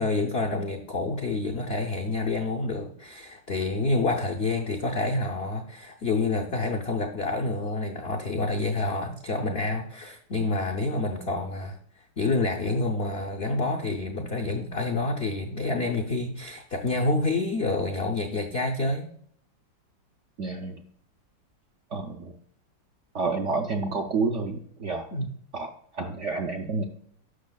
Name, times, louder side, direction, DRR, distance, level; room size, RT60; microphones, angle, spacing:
voice 1, 0.0-11.8 12.2-19.1 25.1-25.3, left 2 dB, 75° left, 2 dB, 0.5 m, -28 dB
voice 2, 20.4-20.8 21.9-22.3 23.1-25.1 25.5-26.8, right 4 dB, 70° right, 3 dB, 0.7 m, -29 dB
11.5 x 6.2 x 2.3 m, 0.63 s
omnidirectional pair, 2.0 m